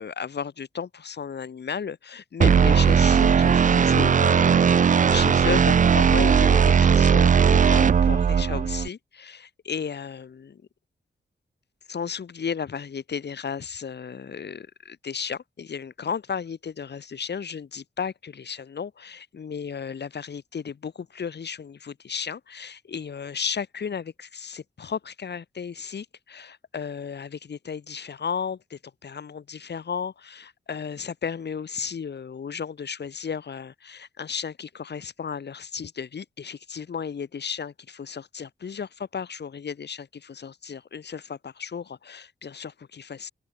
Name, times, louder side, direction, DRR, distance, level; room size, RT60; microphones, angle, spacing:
voice 1, 0.0-10.6 11.9-43.3, left 6 dB, 65° left, 2.3 m, -34 dB
sound 1, 2.4-8.9, right 7 dB, 45° right, 0.5 m, -18 dB
open air
wide cardioid pair, 140°, 19 cm